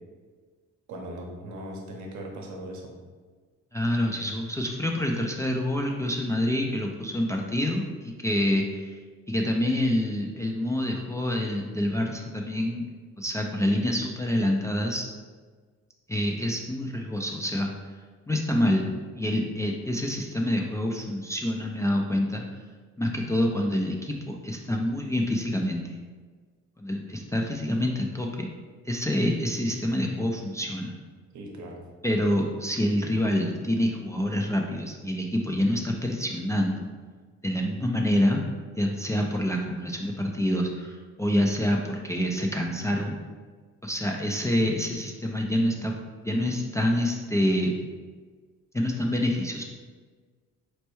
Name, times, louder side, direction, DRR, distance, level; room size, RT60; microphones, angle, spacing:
voice 1, 0.9-2.9 31.3-31.8, right 1 dB, 70° right, 1 dB, 0.8 m, -39 dB
voice 2, 3.7-9.0 9.3-12.9 13.2-15.0 16.1-17.7 18.3-22.4 23.0-26.0 26.8-28.5 28.8-30.9 32.0-36.8 37.4-38.4 38.8-43.2 43.8-45.9 46.2-47.7 48.7-49.6, left 1 dB, 10° left, -1 dB, 0.3 m, -27 dB
4.3 x 2.2 x 3.0 m, 1.5 s
cardioid pair, 90°, 30 cm